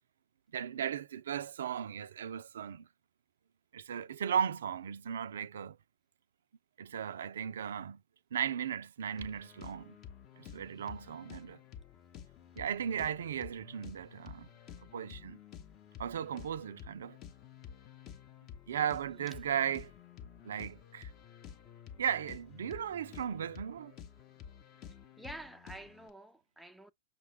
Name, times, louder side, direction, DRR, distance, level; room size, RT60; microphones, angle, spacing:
voice 1, 0.5-2.9 3.7-5.8 6.8-8.0 8.3-10.0 10.4-11.6 12.6-14.5 14.9-15.4 16.0-17.2 18.7-19.9 20.4-21.1 22.0-24.0, right 8 dB, 70° right, 0.4 m, -36 dB
sound 1, 9.1-26.1, left 8 dB, 35° left, 0.7 m, -51 dB
voice 2, 25.2-26.9, right 1 dB, ahead, 0.4 m, -49 dB
5.6 x 2.2 x 3.3 m
hypercardioid pair, 115°, 0 cm